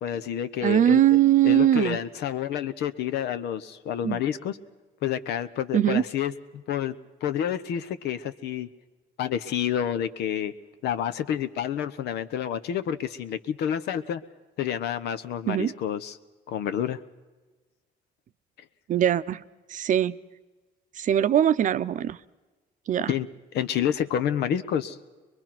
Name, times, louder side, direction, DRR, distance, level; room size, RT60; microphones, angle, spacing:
voice 1, 0.0-1.2 1.4-4.6 5.0-7.0 7.2-8.7 9.2-10.5 10.8-14.2 14.6-16.2 16.5-17.0 23.1-23.3 23.5-25.0, left 9 dB, 75° left, 12 dB, 1.1 m, -29 dB
voice 2, 0.6-2.0 4.0-4.2 5.7-6.0 15.5-15.7 18.9-19.4 19.7-20.2 21.0-22.2 22.9-23.1, right 11 dB, 50° right, 13 dB, 0.7 m, -21 dB
23.0 x 22.0 x 6.0 m, 1.3 s
cardioid pair, 110°, 17 cm